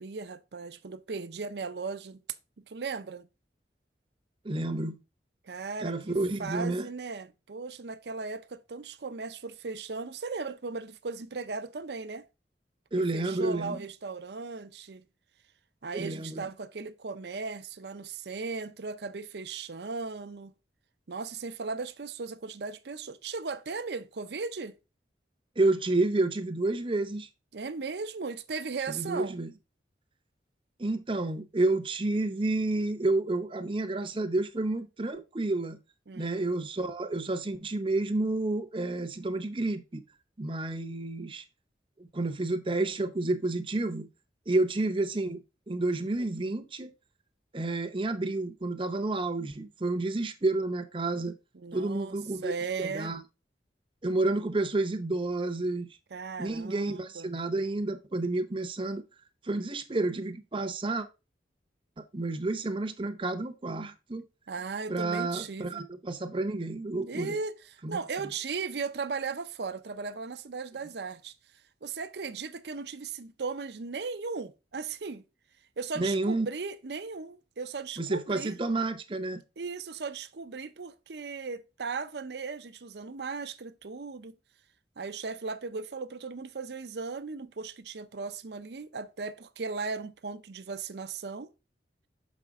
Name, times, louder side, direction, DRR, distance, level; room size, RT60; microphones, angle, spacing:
voice 1, 0.0-2.2 2.6-3.3 5.4-12.3 13.0-15.0 15.8-20.5 21.1-24.8 27.5-29.4 36.1-36.5 51.5-53.1 56.1-57.3 64.5-65.8 67.1-71.3 71.8-75.2 75.8-78.6 79.6-84.3 85.0-91.5, right 4 dB, 70° right, 0.6 m, -37 dB
voice 2, 4.4-5.0 5.8-6.9 12.9-13.9 15.9-16.4 25.6-27.3 28.9-29.5 30.8-35.8 36.1-40.0 40.4-41.4 42.0-44.1 44.5-46.9 47.5-51.3 51.7-52.5 52.8-53.2 54.0-55.9 56.4-59.0 59.4-61.1 62.0-64.2 64.9-67.4 67.8-68.0 75.9-76.5 78.0-79.4, right 2 dB, 30° right, 0.7 m, -30 dB
6.6 x 5.2 x 3.5 m
head